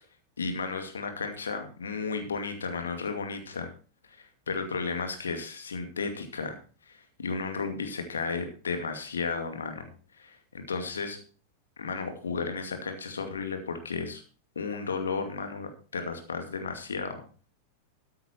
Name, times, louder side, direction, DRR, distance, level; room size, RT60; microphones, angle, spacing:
voice 1, 0.4-3.7 4.2-6.6 6.9-9.9 10.2-11.2 11.8-14.2 14.6-17.2, left 4 dB, 70° left, 6 dB, 2.4 m, -33 dB
13.5 x 9.4 x 4.5 m, 0.38 s
figure-of-eight pair, 90°, 0 cm